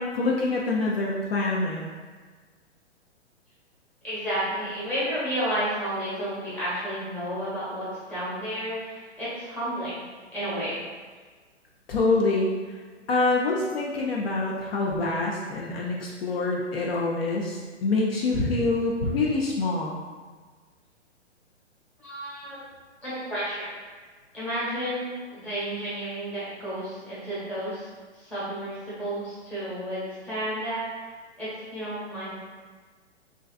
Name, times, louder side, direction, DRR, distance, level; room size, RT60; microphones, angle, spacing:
voice 1, 0.0-1.8 11.9-12.5 13.1-20.0, left 3 dB, 55° left, -3 dB, 0.4 m, -25 dB
voice 2, 4.0-10.0 10.3-10.8 22.0-22.6 23.0-23.7 24.3-27.9 28.1-30.9 31.4-32.3, equal, 5° left, -12 dB, 0.8 m, -31 dB
2.5 x 2.3 x 2.3 m, 1.5 s
figure-of-eight pair, 120°, 35 cm